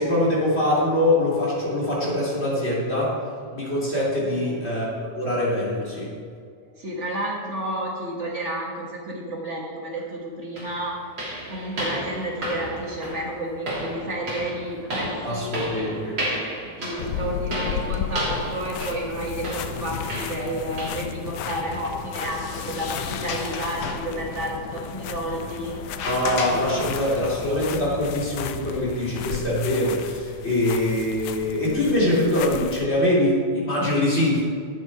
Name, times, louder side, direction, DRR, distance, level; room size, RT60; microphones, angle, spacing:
voice 1, 0.0-3.2 3.5-6.1 15.2-16.2 26.0-34.4, left 1 dB, 20° left, -6 dB, 3.0 m, -23 dB
voice 2, 4.2-4.5 6.8-11.0 11.5-16.0 16.6-25.8, right 1 dB, 60° right, -2 dB, 0.7 m, -31 dB
sound 1, 10.0-10.1 10.6-21.2 21.5-21.8 22.1-22.3 22.8-22.9 23.4-23.5, equal, 30° right, 3.6 m, -33 dB
sound 2, 17.0-32.9, left 9 dB, 85° left, 1.5 m, -34 dB
Sliding door, 21.9-27.5, left 5 dB, 60° left, 1.9 m, -34 dB
12.5 x 8.3 x 4.7 m, 2.3 s
omnidirectional pair, 3.5 m